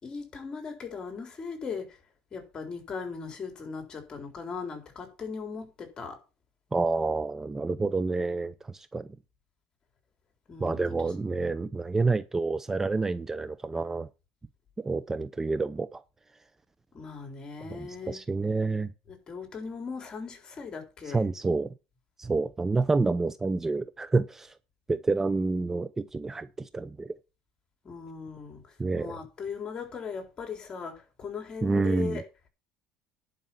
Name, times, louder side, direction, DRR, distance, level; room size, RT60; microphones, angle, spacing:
voice 1, 0.0-2.0 2.3-6.2 10.5-11.1 16.9-18.2 19.1-21.3 27.8-32.2, left 5 dB, 30° left, 3.9 m, -38 dB
voice 2, 6.7-9.1 10.6-14.1 14.8-16.0 17.7-18.9 21.1-21.7 22.2-24.5 24.9-27.1 28.8-29.2 31.6-32.2, right 3 dB, 15° right, 0.6 m, -28 dB
11.0 x 5.6 x 7.1 m
supercardioid pair, 110°, 2 cm